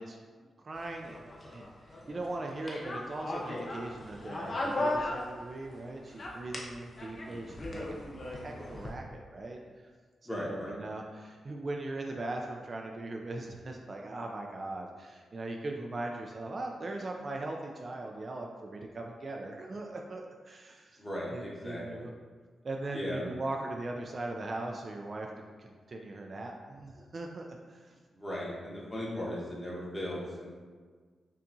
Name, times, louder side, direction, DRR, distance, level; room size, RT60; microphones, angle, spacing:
voice 1, 0.0-9.9 10.2-21.0 21.3-22.1 22.6-25.3 25.6-27.9, right 2 dB, 40° right, 1 dB, 0.3 m, -40 dB
sound 1, 0.7-5.8 6.1-8.9, left 1 dB, 40° left, 0.7 m, -37 dB
voice 2, 10.2-10.8 21.0-22.1 22.9-23.3 28.1-30.5, left 1 dB, 15° left, -5 dB, 1.0 m, -38 dB
5.5 x 2.4 x 2.6 m, 1.5 s
cardioid pair, 100°, 0 cm